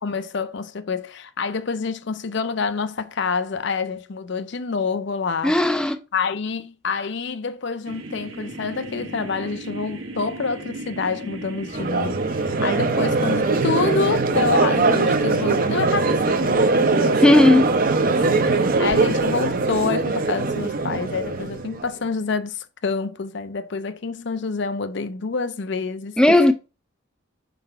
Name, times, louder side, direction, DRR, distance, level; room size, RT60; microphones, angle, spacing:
voice 1, 0.0-5.6 6.1-17.4 18.1-18.4 18.8-26.4, left 4 dB, 55° left, 0.5 m, -27 dB
voice 2, 5.4-6.0 17.2-17.6 26.2-26.5, left 1 dB, 5° left, 0.3 m, -15 dB
sound 1, 7.8-19.3, right 2 dB, 80° right, 1.1 m, -37 dB
Crowd, 11.7-21.9, right 3 dB, 45° right, 0.6 m, -21 dB
4.4 x 4.0 x 5.5 m
head